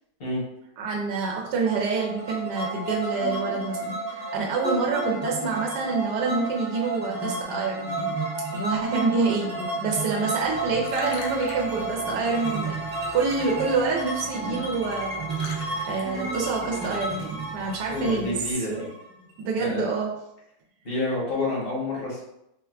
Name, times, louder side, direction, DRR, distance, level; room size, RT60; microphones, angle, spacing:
voice 1, 0.8-8.1 8.5-9.5 9.8-12.7 13.1-18.3 18.7-18.8 19.4-20.1, right 4 dB, 90° right, -2 dB, 1.2 m, -27 dB
sound 1, 1.7-19.4, right 2 dB, 30° right, 0.5 m, -32 dB
Liquid, 10.4-18.5, left 4 dB, 85° left, 1.2 m, -45 dB
voice 2, 17.9-18.9 19.6-19.9 20.8-22.2, left 2 dB, 45° left, -5 dB, 0.9 m, -29 dB
4.1 x 2.2 x 2.3 m, 0.82 s
omnidirectional pair, 1.7 m